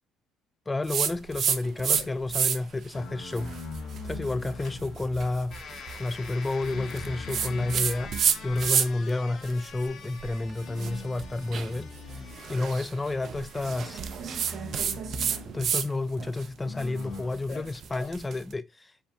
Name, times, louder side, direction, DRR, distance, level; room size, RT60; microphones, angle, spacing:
voice 1, 0.7-3.5 4.0-5.6 6.0-14.0 15.5-18.9, left 2 dB, 15° left, 0.3 m, -30 dB
sound 1, 0.9-2.0 2.3-2.8 3.3-9.1 9.4-15.9 16.2-18.4, right 7 dB, 55° right, 0.6 m, -30 dB
sound 2, 1.9-18.1, left 6 dB, 55° left, 1.5 m, -47 dB
sound 3, 2.9-5.3 6.3-8.8 9.2-9.5 10.6-12.7 13.7-15.7 16.6-17.4, left 4 dB, 70° left, 1.3 m, -42 dB
5.1 x 3.5 x 2.8 m
cardioid pair, 100°, 0 cm